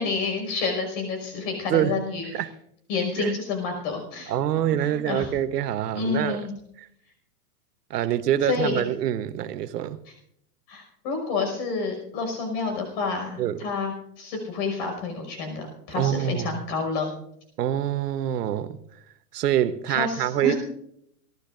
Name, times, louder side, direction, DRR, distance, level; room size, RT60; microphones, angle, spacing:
voice 1, 0.0-2.3 2.9-4.3 4.8-5.3 5.9-6.5 8.4-8.8 10.7-17.1 19.9-20.5, left 4 dB, 35° left, 5.5 m, -29 dB
voice 2, 4.3-6.5 7.9-10.0 13.4-13.6 15.9-16.5 17.6-18.8 19.3-20.5, right 11 dB, 80° right, 1.0 m, -25 dB
29.0 x 12.0 x 2.6 m
supercardioid pair, 170°, 47 cm